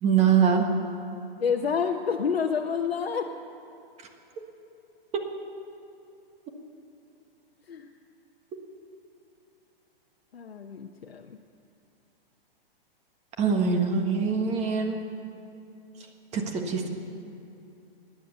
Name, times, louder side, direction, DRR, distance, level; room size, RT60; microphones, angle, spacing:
voice 1, 0.0-0.7 5.1-5.2 13.4-15.0 16.3-16.9, right 6 dB, 20° right, 4 dB, 1.5 m, -23 dB
voice 2, 1.4-3.3 7.7-7.9 10.3-11.4, left 6 dB, 85° left, 3 dB, 0.9 m, -28 dB
18.0 x 10.0 x 6.8 m, 2.7 s
hypercardioid pair, 130°, 30 cm